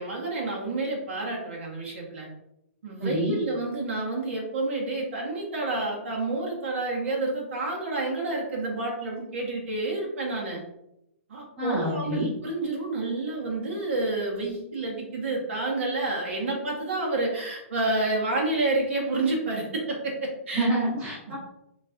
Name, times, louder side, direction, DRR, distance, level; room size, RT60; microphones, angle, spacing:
voice 1, 0.0-2.3 2.8-10.6 11.3-20.7, right 2 dB, 60° right, -2 dB, 1.3 m, -29 dB
voice 2, 3.0-3.4 11.6-12.3 20.5-21.4, right 1 dB, 15° right, -8 dB, 1.4 m, -27 dB
4.2 x 3.7 x 2.5 m, 0.83 s
hypercardioid pair, 180°, 8 cm